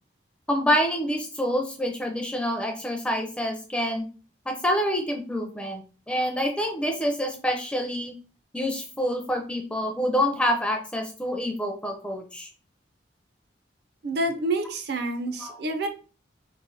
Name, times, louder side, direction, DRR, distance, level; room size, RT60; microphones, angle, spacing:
voice 1, 0.5-4.0 4.5-5.8 6.1-8.1 8.5-12.5 15.4-15.6, equal, 5° left, 2 dB, 0.4 m, -27 dB
voice 2, 14.0-15.9, right 2 dB, 60° right, 6 dB, 0.5 m, -28 dB
3.1 x 2.1 x 3.9 m, 0.36 s
head